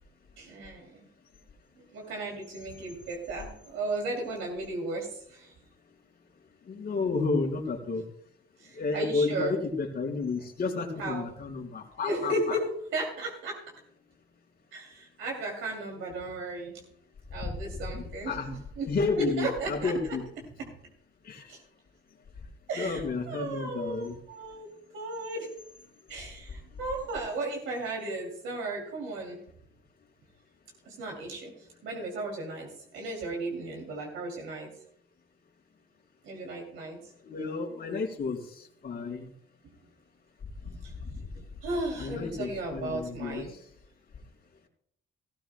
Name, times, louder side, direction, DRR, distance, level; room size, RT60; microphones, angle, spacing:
voice 1, 0.4-1.1 1.8-5.5 8.6-9.5 11.0-11.2 12.0-13.6 14.7-16.8 17.3-18.9 19.2-20.1 21.5-21.6 22.7-25.5 26.1-29.4 30.8-31.5 31.8-34.7 36.2-37.0 40.8-40.9 41.6-43.5, right 2 dB, 85° right, 0 dB, 2.7 m, -35 dB
voice 2, 6.7-8.0 8.7-12.6 17.4-17.5 17.9-18.5 18.9-20.2 21.2-21.5 22.8-24.2 37.2-39.3 40.6-41.2 42.0-43.4, left 4 dB, 50° left, 0 dB, 3.4 m, -31 dB
17.5 x 14.5 x 2.2 m, 0.70 s
cardioid pair, 90°, 20 cm